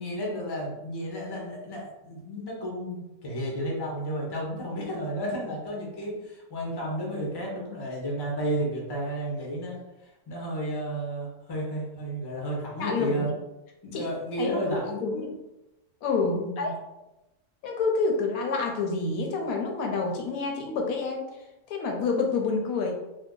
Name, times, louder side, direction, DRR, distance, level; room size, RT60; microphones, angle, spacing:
voice 1, 0.0-13.3 13.8-15.2 16.3-16.7, right 1 dB, 30° left, -2 dB, 0.4 m, -32 dB
voice 2, 12.8-13.3 13.9-14.1 14.4-15.4 16.0-16.8 17.6-21.2 21.7-22.9, left 4 dB, 75° left, 1 dB, 1.0 m, -28 dB
2.7 x 2.2 x 3.7 m, 0.96 s
omnidirectional pair, 1.6 m